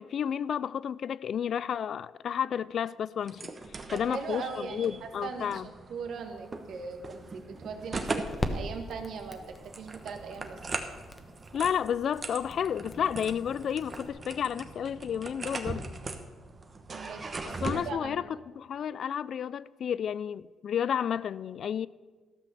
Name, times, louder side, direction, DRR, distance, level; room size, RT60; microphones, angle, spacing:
voice 1, 0.0-3.5 3.9-5.7 11.5-15.9 17.4-18.2 18.6-21.9, left 8 dB, 60° left, 0.3 m, -31 dB
sound 1, 3.2-17.8, right 3 dB, 35° right, 1.1 m, -40 dB
voice 2, 3.9-8.2 8.5-10.6 16.9-18.2, right 5 dB, 70° right, 1.5 m, -40 dB
sound 2, 6.2-14.1, left 2 dB, 20° left, 1.1 m, -41 dB
13.5 x 6.2 x 6.7 m
cardioid pair, 90°, 0 cm